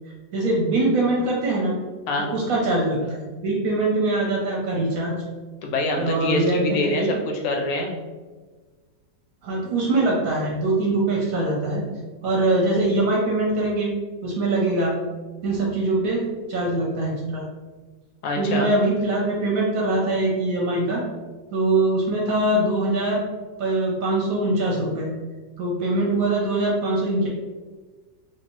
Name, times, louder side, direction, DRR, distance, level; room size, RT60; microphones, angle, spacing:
voice 1, 0.3-1.8 2.3-5.1 6.0-7.2 9.4-11.9 12.2-13.9 14.2-15.0 15.4-17.4 18.4-21.0 21.5-23.2 23.6-25.1 25.6-27.3, right 2 dB, 65° right, -2 dB, 0.9 m, -23 dB
voice 2, 5.6-8.0 18.2-18.7, left 2 dB, 85° left, 1 dB, 1.3 m, -25 dB
3.2 x 2.8 x 2.9 m, 1.3 s
omnidirectional pair, 1.9 m